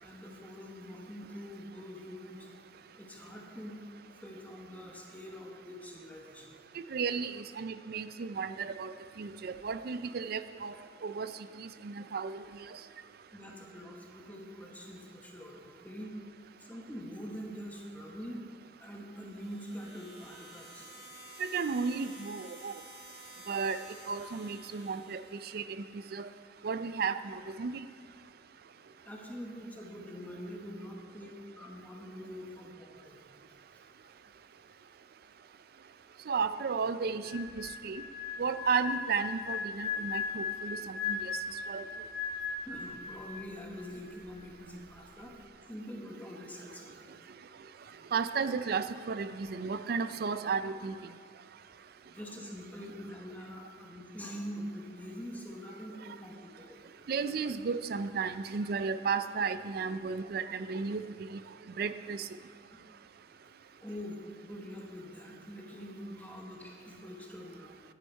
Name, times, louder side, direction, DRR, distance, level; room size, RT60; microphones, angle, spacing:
voice 1, 0.0-2.5 2.9-6.5 13.3-16.2 16.6-18.4 18.8-21.1 29.0-33.2 42.6-45.3 45.7-47.0 52.0-56.8 62.7-62.8 63.4-63.5 63.8-67.8, equal, 10° left, -1 dB, 1.1 m, -45 dB
voice 2, 6.9-10.7 11.0-11.3 11.6-12.4 21.4-22.7 23.5-23.8 24.1-25.2 25.5-25.7 26.1-26.3 26.6-27.8 36.3-38.0 38.4-41.4 41.7-41.8 48.1-51.0 57.1-61.0 61.3-61.4 61.8-62.3, right 5 dB, 60° right, 12 dB, 0.4 m, -33 dB
sound 1, 19.2-25.4, right 1 dB, 80° right, 2.4 m, -52 dB
sound 2, 37.2-43.6 43.9-44.2, left 5 dB, 50° left, 0.9 m, -37 dB
9.7 x 9.4 x 4.4 m, 2.1 s
head